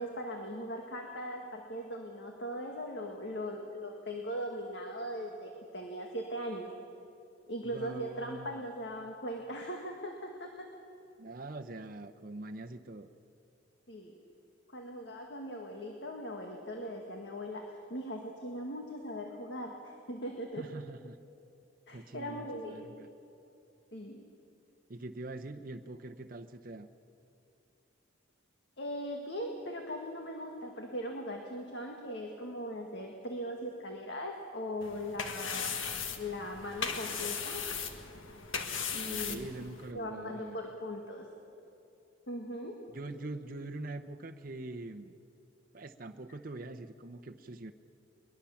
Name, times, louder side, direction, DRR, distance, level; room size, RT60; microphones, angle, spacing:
voice 1, 0.0-6.7 7.5-10.7 13.9-14.1 14.7-20.6 21.9-22.8 23.9-24.2 28.8-35.8 36.2-37.7 38.9-39.5 39.9-41.3 42.3-42.8, equal, 60° left, 2 dB, 1.9 m, -39 dB
voice 2, 7.7-8.6 11.2-13.1 20.6-21.2 21.9-23.1 24.9-26.9 39.1-40.8 42.9-45.1 45.7-47.7, right 2 dB, 45° right, 4 dB, 0.8 m, -43 dB
sound 1, 34.8-39.9, left 6 dB, 90° left, 1.6 m, -37 dB
22.0 x 21.0 x 7.2 m, 2.7 s
head